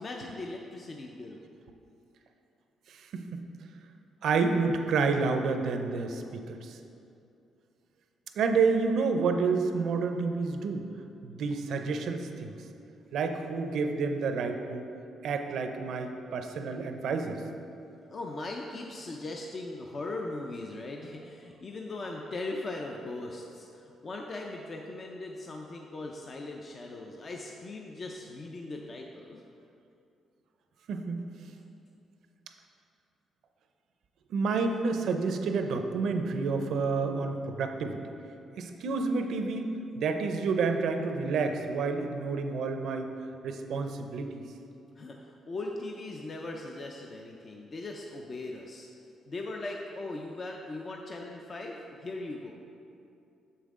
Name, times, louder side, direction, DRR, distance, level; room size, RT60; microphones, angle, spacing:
voice 1, 0.0-1.4 12.7-13.2 18.1-29.4 45.0-48.9 49.3-52.5, left 2 dB, 40° left, 0 dB, 0.5 m, -39 dB
voice 2, 2.9-3.4 4.2-6.8 8.4-10.9 11.2-12.5 13.1-14.9 15.2-17.4 30.9-31.2 34.3-38.0 38.6-39.7 40.0-43.1 43.4-44.4, right 4 dB, 70° right, 6 dB, 0.5 m, -29 dB
7.1 x 5.6 x 3.7 m, 2.6 s
cardioid pair, 90°, 0 cm